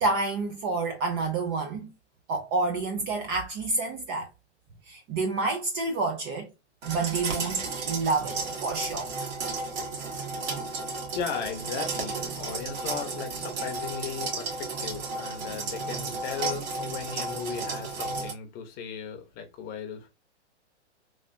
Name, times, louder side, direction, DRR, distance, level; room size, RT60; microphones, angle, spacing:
voice 1, 0.0-1.9 2.3-4.3 4.9-6.5 6.9-9.1, right 3 dB, 25° right, 0.3 m, -29 dB
sound 1, 6.8-18.3, right 3 dB, 55° right, 1.7 m, -33 dB
voice 2, 11.1-20.1, left 7 dB, 25° left, 0.7 m, -37 dB
3.3 x 2.4 x 2.5 m
hypercardioid pair, 130°, 35 cm